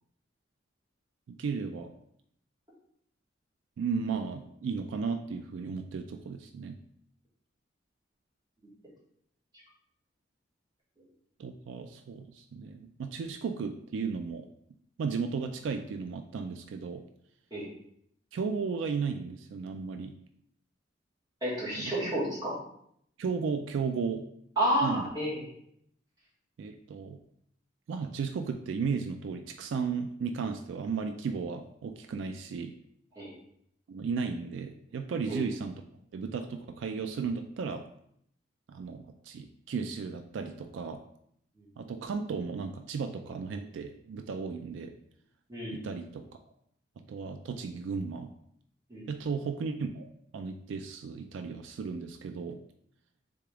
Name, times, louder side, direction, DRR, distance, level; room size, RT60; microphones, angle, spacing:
voice 1, 1.3-1.9 3.8-6.8 11.4-14.5 15.0-17.0 18.3-20.1 21.7-21.9 23.2-24.2 24.8-25.0 26.6-27.2 27.9-32.7 33.9-35.7 36.1-37.8 38.7-41.0 41.8-44.9 45.7-46.2 47.1-48.3 49.1-52.6, right 5 dB, 80° right, 7 dB, 0.3 m, -35 dB
voice 2, 21.4-22.6 24.6-25.5 33.2-33.3 35.3-35.4 41.6-41.7 45.5-45.8 48.9-49.1, right 1 dB, 20° right, -7 dB, 1.6 m, -30 dB
3.8 x 3.5 x 3.3 m, 0.70 s
head